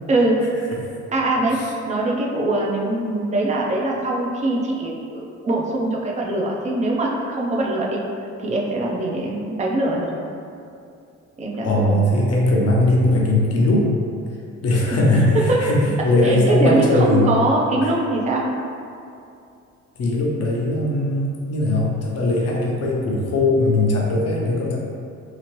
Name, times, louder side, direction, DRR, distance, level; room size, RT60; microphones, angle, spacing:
voice 1, 0.1-0.4 1.1-8.0 8.4-10.1 11.4-12.1 14.9-15.2 15.5-15.6 16.2-18.5, right 2 dB, 25° right, -2 dB, 0.5 m, -22 dB
voice 2, 11.6-13.9 14.6-17.3 17.8-17.9 20.0-24.8, left 1 dB, 55° left, -2 dB, 0.7 m, -19 dB
2.9 x 2.5 x 3.0 m, 2.5 s
cardioid pair, 90°, 30 cm